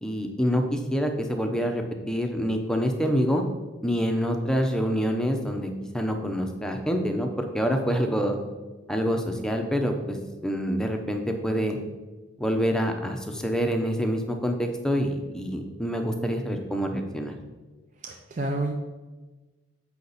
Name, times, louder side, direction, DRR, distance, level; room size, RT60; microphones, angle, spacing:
voice 1, 0.0-3.4 3.8-8.4 8.9-10.2 10.4-11.8 12.4-17.3, equal, 5° left, 3 dB, 0.7 m, -26 dB
voice 2, 18.0-18.7, right 2 dB, 35° right, 1 dB, 0.6 m, -29 dB
8.2 x 5.7 x 4.1 m, 1.2 s
head